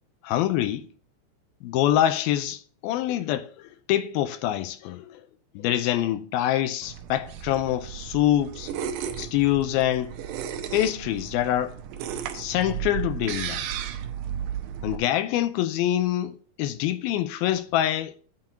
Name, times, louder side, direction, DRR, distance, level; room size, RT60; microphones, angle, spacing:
voice 1, 0.2-0.9 1.6-5.2 5.6-8.7 9.2-10.1 10.7-11.8 12.3-13.6 14.8-18.1, left 12 dB, 80° left, 2.3 m, -25 dB
sound 1, 6.8-15.0, right 9 dB, 85° right, 1.8 m, -34 dB
9.5 x 4.5 x 4.9 m
omnidirectional pair, 4.7 m